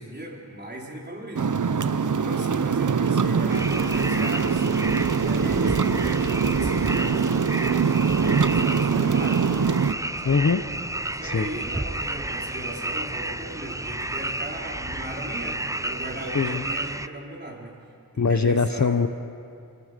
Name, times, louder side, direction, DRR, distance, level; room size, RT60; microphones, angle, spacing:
voice 1, 0.0-1.6 2.2-4.7 5.2-7.3 8.2-9.4 10.2-10.4 11.1-17.8 18.1-19.0, right 1 dB, 30° right, -2 dB, 4.3 m, -37 dB
sound 1, 1.4-9.9, right 5 dB, 55° right, 0.8 m, -23 dB
sound 2, 3.5-17.1, right 1 dB, 10° right, 0.5 m, -32 dB
voice 2, 10.2-10.6 11.2-11.5 16.3-16.6 18.2-19.1, left 5 dB, 50° left, 10 dB, 0.8 m, -22 dB
28.5 x 19.5 x 5.2 m, 2.5 s
wide cardioid pair, 50°, 36 cm